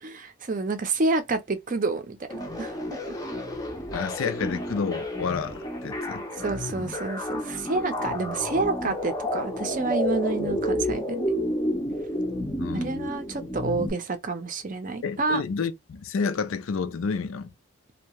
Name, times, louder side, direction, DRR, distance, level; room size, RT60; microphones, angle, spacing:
voice 1, 0.0-2.7 6.4-11.3 12.7-15.4, right 3 dB, 40° right, 0.5 m, -29 dB
sound 1, 2.3-13.9, left 1 dB, 15° left, 0.5 m, -30 dB
voice 2, 3.9-6.2 12.6-13.1 15.0-17.5, left 5 dB, 75° left, 0.4 m, -30 dB
2.7 x 2.1 x 2.9 m
head